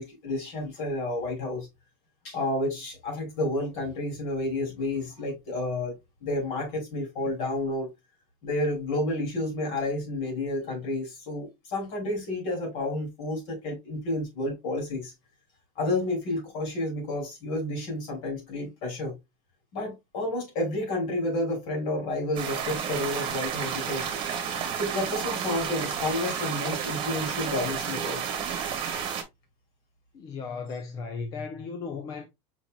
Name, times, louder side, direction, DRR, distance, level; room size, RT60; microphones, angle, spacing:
voice 1, 0.0-1.7 2.2-7.9 8.4-15.1 15.8-19.2 19.7-24.1 24.8-28.2, left 1 dB, 45° left, 3.0 m, -30 dB
sound 1, 22.4-29.2, right 8 dB, 30° right, 1.3 m, -31 dB
voice 2, 30.1-32.3, left 5 dB, 20° left, 0.4 m, -36 dB
5.9 x 4.1 x 2.2 m
supercardioid pair, 180°, 16 cm